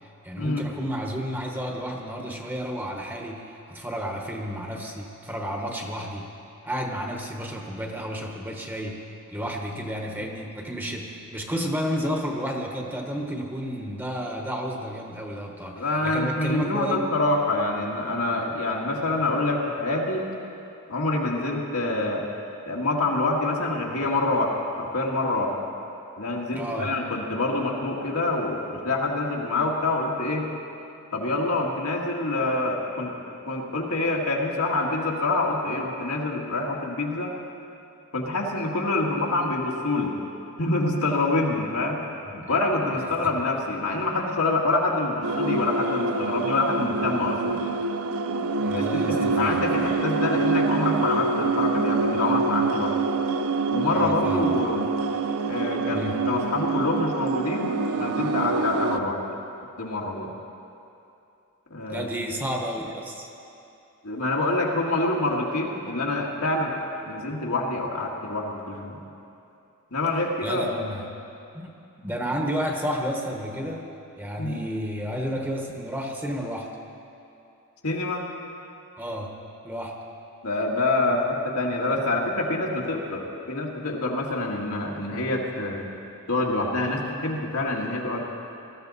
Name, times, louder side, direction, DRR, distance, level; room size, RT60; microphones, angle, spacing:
voice 1, 0.2-6.3 6.6-9.0 9.3-17.1 26.5-27.0 42.2-42.6 43.2-43.3 48.6-49.9 53.9-54.6 55.9-56.2 61.9-63.3 70.4-71.0 71.5-71.7 72.0-73.9 74.2-76.7 79.0-79.3 79.6-80.0, equal, 10° right, 1 dB, 1.1 m, -31 dB
voice 2, 15.7-20.2 20.9-22.3 22.7-25.5 26.2-30.5 31.1-33.2 33.5-37.3 38.1-40.1 40.6-42.0 42.3-47.6 48.7-52.9 53.7-54.9 55.4-59.2 59.8-60.3 61.7-62.1 64.0-66.7 67.0-69.0 69.9-70.7 74.4-74.6 77.8-78.2 80.4-83.2 83.5-85.9 86.3-88.2, left 2 dB, 80° left, -1 dB, 1.9 m, -26 dB
sound 1, 45.2-59.0, right 3 dB, 75° right, 0.6 m, -26 dB
19.5 x 13.5 x 4.1 m, 2.7 s
head